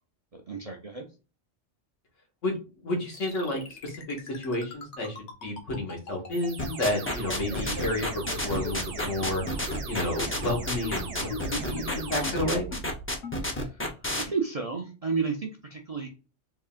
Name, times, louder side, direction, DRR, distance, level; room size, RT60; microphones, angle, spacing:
voice 1, 0.3-1.1 13.5-13.8 14.2-16.1, right 5 dB, 45° right, 2 dB, 0.5 m, -32 dB
voice 2, 2.8-9.4 9.9-12.7, left 1 dB, 80° left, 0 dB, 1.7 m, -31 dB
sound 1, 3.1-8.4 8.6-8.7 9.0-9.1 9.3-9.4 9.7-9.8 10.0-10.1 10.4-10.5 10.8-10.9 11.3-11.4 11.8-11.9 12.2-12.3 12.7-12.8 13.2-13.3, left 5 dB, 65° left, 1.3 m, -39 dB
sound 2, 6.3-13.1, right 4 dB, 65° right, 1.0 m, -38 dB
sound 3, 6.6-14.2, left 1 dB, 15° left, 0.5 m, -30 dB
3.7 x 3.6 x 2.4 m, 0.33 s
omnidirectional pair, 1.3 m